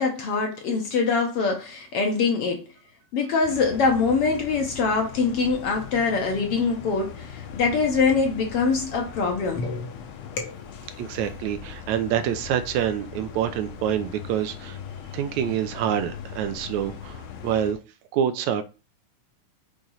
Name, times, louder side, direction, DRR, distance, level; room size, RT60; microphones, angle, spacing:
voice 1, 0.0-2.7 3.1-9.9 10.4-10.6, left 4 dB, 60° left, 1.6 m, -24 dB
sound 1, 3.4-17.7, left 7 dB, 90° left, 2.4 m, -40 dB
voice 2, 11.0-14.8 15.1-17.8 18.1-18.6, right 9 dB, 80° right, 1.9 m, -26 dB
6.2 x 3.8 x 5.5 m
omnidirectional pair, 3.5 m